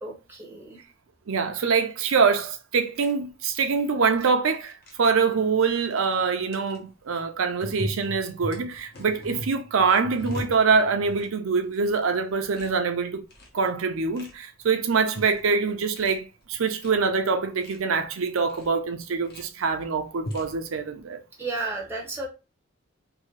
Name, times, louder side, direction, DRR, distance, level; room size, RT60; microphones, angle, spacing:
voice 1, 0.0-0.8 21.4-22.3, right 3 dB, 10° right, 0.7 m, -33 dB
voice 2, 1.3-4.7 5.0-13.2 13.5-21.2, right 5 dB, 75° right, 0.5 m, -24 dB
sound 1, 2.9-3.1 4.1-4.3 4.5-4.9 5.9-6.1 6.5-6.8 7.6-11.3 11.6-12.0 12.3-12.7 13.1-13.6 14.1-14.3 14.9-15.4 15.7-16.2 16.5-16.9 17.4-17.8 18.5-18.7 19.1-19.5 20.1-20.5, equal, 50° left, 0.8 m, -38 dB
2.7 x 2.6 x 3.1 m
head